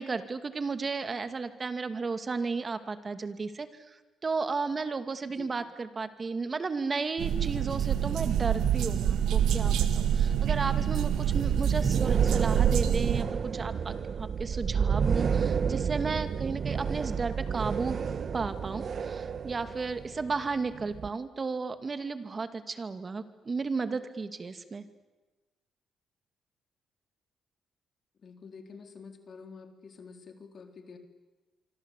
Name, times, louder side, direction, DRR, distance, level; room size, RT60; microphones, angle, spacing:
voice 1, 0.0-18.0 18.3-24.8, right 4 dB, 35° right, 10 dB, 2.4 m, -34 dB
voice 2, 5.2-5.6 28.2-31.0, left 5 dB, 50° left, 6 dB, 3.8 m, -48 dB
sound 1, 7.2-13.2, right 9 dB, 80° right, 1.7 m, -27 dB
sound 2, 11.3-21.1, right 6 dB, 50° right, 1.2 m, -30 dB
26.0 x 25.5 x 8.4 m, 1.2 s
cardioid pair, 90°, 0 cm